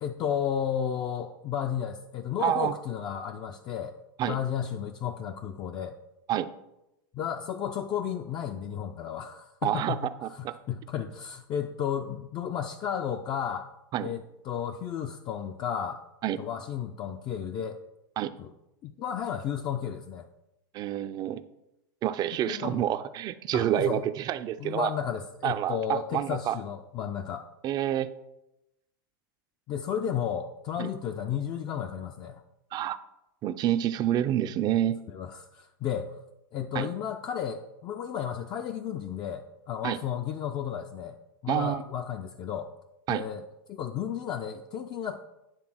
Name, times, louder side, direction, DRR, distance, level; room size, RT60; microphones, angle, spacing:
voice 1, 0.0-4.0 4.2-6.0 7.1-10.0 10.3-13.7 14.0-16.0 16.4-17.8 18.4-18.5 18.8-20.3 22.5-22.8 23.5-24.0 24.6-27.5 29.7-32.4 35.1-36.2 36.5-41.2 41.4-42.7 43.1-43.4 43.7-45.2, left 8 dB, 35° left, 5 dB, 0.5 m, -33 dB
voice 2, 2.4-2.7 4.2-4.4 6.3-6.5 9.6-10.0 10.2-10.5 13.9-14.1 16.2-16.4 18.2-18.3 20.7-21.4 22.0-24.9 25.4-26.6 27.6-28.1 30.8-30.9 32.7-33.0 33.4-35.0 36.7-36.9 39.8-40.0 41.5-41.8 43.1-43.2, right 11 dB, 35° right, 12 dB, 0.5 m, -28 dB
9.8 x 3.4 x 6.1 m, 0.89 s
hypercardioid pair, 120°, 12 cm